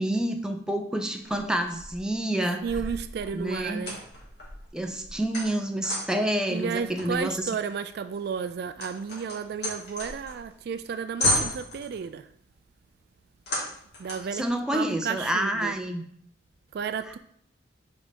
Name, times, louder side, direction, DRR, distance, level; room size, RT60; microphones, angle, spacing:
voice 1, 0.0-2.6 3.3-3.9 4.7-7.4 14.3-16.0, right 1 dB, 5° right, 0.5 m, -28 dB
sound 1, 1.2-2.1 2.6-6.3 7.0-10.5 10.8-10.9 11.2-12.0 13.5-14.4, left 1 dB, 60° left, 2.1 m, -33 dB
voice 2, 2.6-4.0 6.5-12.3 14.0-15.7 16.7-17.2, right 6 dB, 55° right, 0.3 m, -33 dB
5.1 x 4.7 x 5.2 m
head